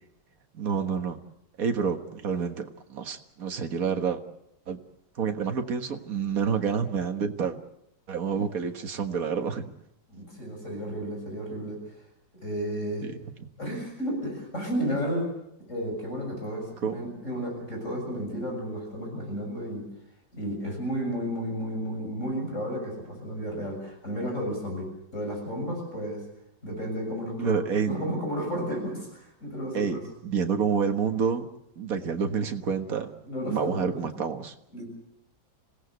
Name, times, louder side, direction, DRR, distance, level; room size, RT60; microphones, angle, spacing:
voice 1, 0.5-1.2 1.6-4.2 4.7-4.8 5.2-7.6 8.1-9.7 13.0-13.1 16.8-16.9 27.4-28.0 29.7-30.0 30.2-31.5 31.8-33.1 33.4-34.5, right 6 dB, 50° right, 6 dB, 1.9 m, -28 dB
voice 2, 10.1-12.0 12.3-13.1 13.6-15.3 15.7-19.8 20.3-26.2 26.6-27.6 27.9-30.0 33.2-34.1 34.7-34.9, equal, 35° left, 1 dB, 7.4 m, -32 dB
26.0 x 17.5 x 8.0 m, 0.80 s
omnidirectional pair, 2.1 m